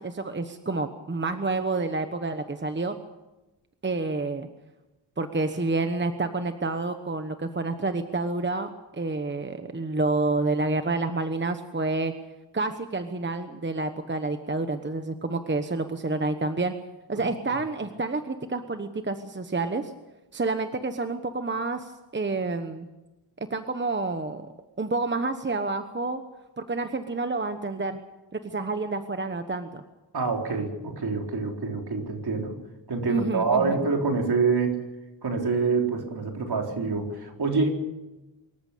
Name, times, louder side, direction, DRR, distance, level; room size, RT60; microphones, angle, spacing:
voice 1, 0.0-3.0 3.8-4.5 5.2-12.1 12.5-16.7 17.1-19.9 20.3-22.9 23.4-24.5 24.8-26.2 26.6-28.0 28.3-29.8 33.1-33.8, right 3 dB, 25° right, 8 dB, 1.1 m, -29 dB
voice 2, 30.1-32.5 32.9-34.8 35.2-37.7, right 4 dB, 60° right, 2 dB, 4.1 m, -26 dB
25.0 x 14.0 x 8.5 m, 1.0 s
wide cardioid pair, 115°, 43 cm